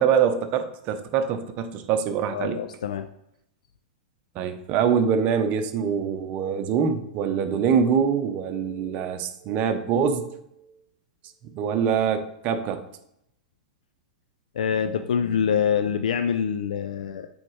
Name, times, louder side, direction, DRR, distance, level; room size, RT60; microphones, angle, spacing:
voice 1, 0.0-2.6 4.3-10.4 11.5-12.8, right 7 dB, 40° right, 8 dB, 0.8 m, -24 dB
voice 2, 2.3-3.1 14.5-17.3, left 7 dB, 70° left, 8 dB, 0.4 m, -25 dB
8.4 x 3.5 x 3.2 m, 0.77 s
hypercardioid pair, 105°, 4 cm